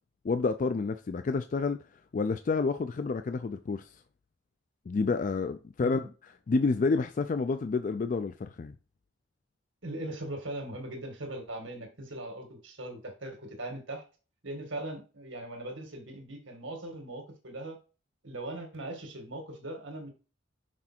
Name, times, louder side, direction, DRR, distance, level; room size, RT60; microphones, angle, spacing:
voice 1, 0.2-1.8 2.1-3.9 4.9-6.0 6.5-8.8, left 4 dB, 40° left, 0.3 m, -29 dB
voice 2, 9.8-14.0 14.4-17.8 18.2-20.1, right 1 dB, 75° right, 1.9 m, -40 dB
6.1 x 4.3 x 4.4 m
head